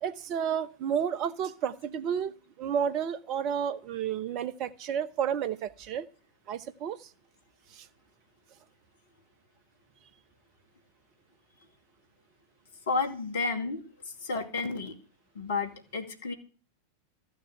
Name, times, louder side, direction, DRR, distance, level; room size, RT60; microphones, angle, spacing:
voice 1, 0.0-6.1 6.5-7.1 7.7-7.9, right 8 dB, 40° right, 1.0 m, -31 dB
voice 2, 12.9-13.8 14.2-14.9 15.3-16.3, left 4 dB, 60° left, 2.3 m, -31 dB
14.5 x 6.5 x 9.2 m
figure-of-eight pair, 90°, 0 cm